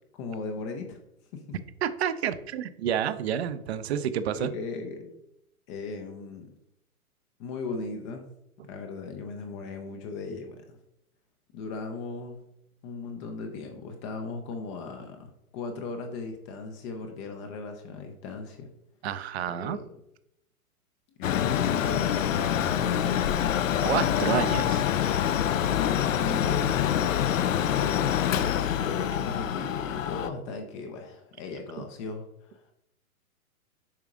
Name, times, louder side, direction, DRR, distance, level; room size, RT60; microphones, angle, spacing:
voice 1, 0.2-1.0 1.3-1.6 4.3-5.1 5.7-6.5 7.4-8.3 8.7-10.8 11.5-12.4 12.8-18.7 19.5-19.9 21.2-23.3 23.9-24.4 25.2-28.2 28.8-32.7, left 4 dB, 20° left, 5 dB, 0.6 m, -37 dB
voice 2, 1.8-4.5 19.0-19.8 23.8-24.8, right 9 dB, 45° right, 12 dB, 0.7 m, -29 dB
Mechanical fan, 21.2-30.3, left 10 dB, 60° left, 0.6 m, -26 dB
7.3 x 4.8 x 3.7 m, 0.80 s
hypercardioid pair, 125°, 44 cm